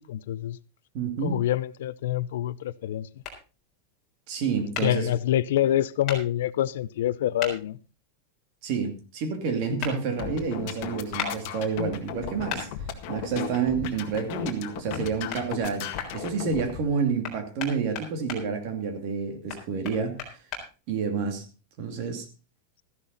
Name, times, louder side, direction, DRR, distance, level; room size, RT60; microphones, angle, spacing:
voice 1, 0.1-0.6 1.2-3.1 4.8-7.8, left 12 dB, 75° left, 0.6 m, -26 dB
voice 2, 0.9-1.4 4.3-5.1 8.6-12.7 13.1-20.2 20.9-21.4 21.8-22.2, right 6 dB, 40° right, 2.6 m, -29 dB
sound 1, 3.2-3.4 4.7-4.9 6.1-6.2 7.4-7.5 9.8-9.9 11.2-11.3 12.5-12.6 14.9-15.0 15.3-16.1 17.2-18.4 19.5-20.6, left 6 dB, 25° left, 4.0 m, -34 dB
sound 2, 10.1-16.8, left 9 dB, 40° left, 1.8 m, -35 dB
14.0 x 11.0 x 4.0 m
supercardioid pair, 175°, 0 cm